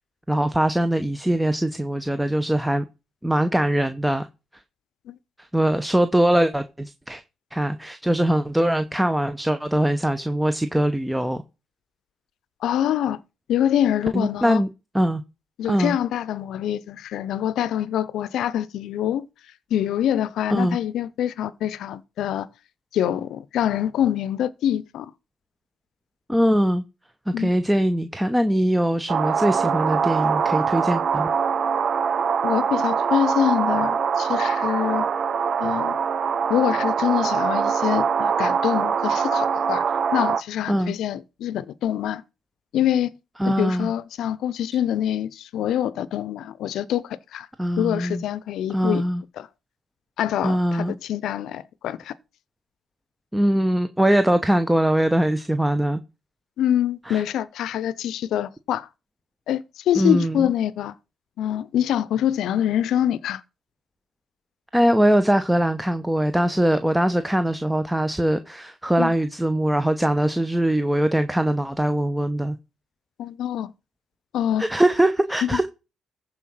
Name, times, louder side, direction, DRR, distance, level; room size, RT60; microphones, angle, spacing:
voice 1, 0.3-2.8 3.2-4.3 5.5-7.2 7.5-11.4 14.1-14.7 14.9-15.2 15.7-16.0 20.5-20.8 26.3-26.8 27.3-31.3 40.7-40.9 43.4-43.9 47.6-48.2 48.7-49.2 50.4-50.9 53.3-56.0 57.1-57.2 60.0-60.5 64.7-72.6 74.6-75.7, right 1 dB, 5° right, 1.0 m, -22 dB
voice 2, 12.6-13.2 13.5-14.6 15.6-19.3 19.7-22.5 22.9-25.1 27.3-27.5 32.4-35.1 35.6-36.0 36.5-39.8 40.1-42.2 42.7-43.1 43.4-47.5 47.8-49.0 49.4-49.5 50.2-52.1 56.6-58.9 59.5-60.9 61.4-63.4 69.0-69.1 73.2-73.7 74.3-74.6 75.4-75.6, left 10 dB, 75° left, 0.7 m, -25 dB
sound 1, 29.1-40.4, right 6 dB, 55° right, 0.6 m, -23 dB
14.5 x 4.9 x 5.6 m
supercardioid pair, 65°, 0 cm